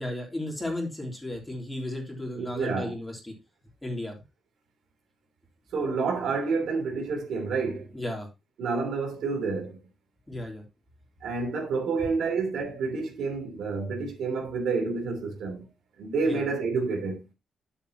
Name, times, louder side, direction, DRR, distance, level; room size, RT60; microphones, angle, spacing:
voice 1, 0.0-3.3 3.8-4.1 7.9-8.3 10.3-10.6 16.2-16.4, left 1 dB, 10° left, 3.3 m, -34 dB
voice 2, 2.3-2.9 5.7-7.9 8.6-9.8 11.2-15.6 16.0-17.2, right 4 dB, 75° right, 3.0 m, -29 dB
10.5 x 7.1 x 3.0 m
wide cardioid pair, 150°, 0 cm